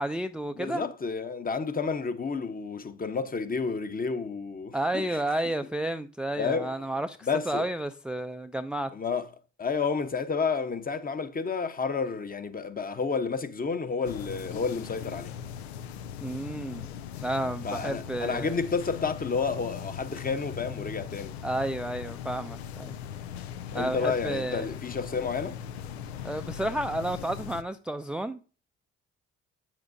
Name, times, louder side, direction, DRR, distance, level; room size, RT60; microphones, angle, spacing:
voice 1, 0.0-0.8 4.7-7.2 7.5-8.9 16.2-16.9 17.2-18.6 21.4-22.9 23.7-24.7 26.2-28.4, right 1 dB, 5° right, 0.4 m, -31 dB
voice 2, 0.6-5.2 6.4-6.7 7.3-7.6 8.9-9.3 9.6-15.3 17.6-21.3 23.7-25.6, left 5 dB, 30° left, 1.0 m, -30 dB
sound 1, 14.0-27.6, left 9 dB, 90° left, 0.5 m, -39 dB
8.6 x 7.4 x 2.7 m
hypercardioid pair, 50°, 31 cm